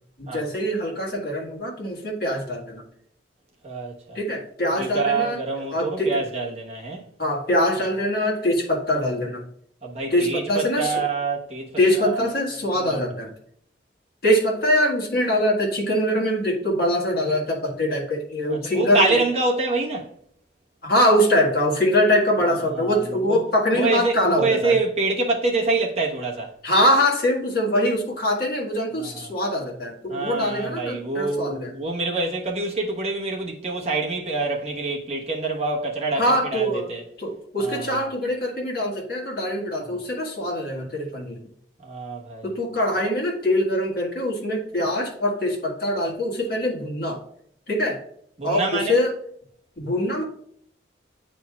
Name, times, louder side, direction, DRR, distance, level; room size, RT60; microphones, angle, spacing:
voice 1, 0.3-2.8 4.2-5.4 5.7-6.2 7.2-9.4 10.1-10.9 11.8-13.3 14.2-19.0 20.8-24.8 26.6-31.7 36.2-36.9 37.2-41.4 42.4-47.2 47.7-48.0 48.4-49.1 49.8-50.2, left 1 dB, 55° left, 1.6 m, -23 dB
voice 2, 3.6-4.2 4.8-7.0 9.8-12.2 12.7-13.0 18.5-20.1 22.4-23.4 23.7-26.5 29.0-29.3 30.1-37.0 37.6-38.1 41.8-42.5 48.4-49.0, right 3 dB, 35° right, 1.2 m, -26 dB
9.2 x 4.3 x 2.4 m
head